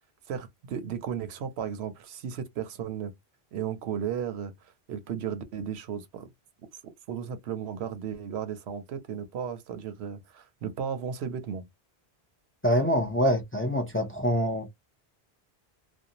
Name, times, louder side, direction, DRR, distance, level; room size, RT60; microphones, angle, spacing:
voice 1, 0.3-3.1 3.5-6.3 7.1-11.7, right 8 dB, 80° right, 0.9 m, -35 dB
voice 2, 12.6-14.7, equal, 15° left, 0.5 m, -25 dB
2.6 x 2.2 x 2.8 m
omnidirectional pair, 1.1 m